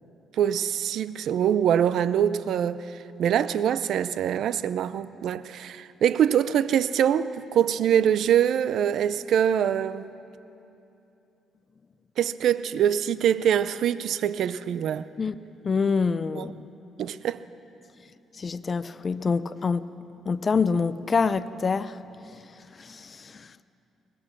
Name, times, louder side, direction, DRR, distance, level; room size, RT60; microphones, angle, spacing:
voice 1, 0.4-10.1 12.2-15.1 16.4-16.5 17.0-17.4, right 9 dB, 70° right, 0.6 m, -24 dB
voice 2, 15.6-16.5 18.4-19.8 20.3-22.0 22.8-23.5, left 5 dB, 40° left, 0.6 m, -26 dB
23.0 x 20.5 x 6.1 m
cardioid pair, 90°, 0 cm